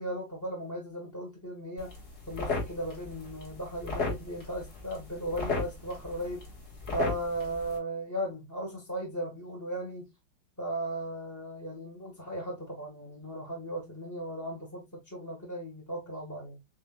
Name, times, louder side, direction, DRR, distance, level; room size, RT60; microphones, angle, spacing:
voice 1, 0.0-1.9 2.3-6.4 6.9-10.1 10.6-16.6, right 1 dB, 15° left, 0.6 m, -36 dB
sound 1, 1.8-7.8, left 3 dB, 40° left, 1.9 m, -36 dB
7.5 x 2.7 x 2.2 m
omnidirectional pair, 2.3 m